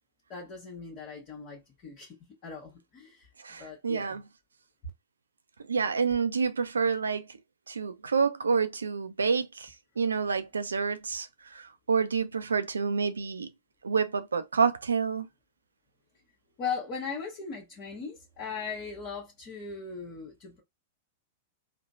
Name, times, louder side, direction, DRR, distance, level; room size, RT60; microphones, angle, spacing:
voice 1, 0.3-2.2 2.4-4.2 16.6-20.6, left 5 dB, 40° left, 1.2 m, -39 dB
voice 2, 3.4-4.2 5.7-7.3 7.7-13.5 13.8-15.3, right 5 dB, 80° right, 0.4 m, -28 dB
3.1 x 2.1 x 2.5 m
figure-of-eight pair, 95°, 0 cm